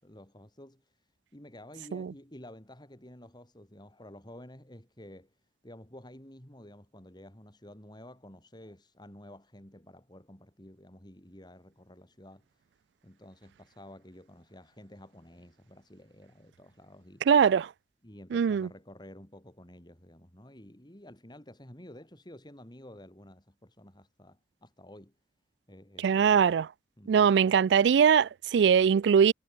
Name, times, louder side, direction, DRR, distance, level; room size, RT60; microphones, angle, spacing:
voice 1, 0.0-1.1 1.3-5.3 5.6-12.4 13.0-17.3 18.0-25.1 25.7-26.6 27.0-27.6, left 1 dB, 25° left, 3.8 m, -51 dB
voice 2, 17.3-17.7 18.3-18.7 26.0-26.7 27.1-29.3, right 7 dB, 75° right, 0.3 m, -22 dB
head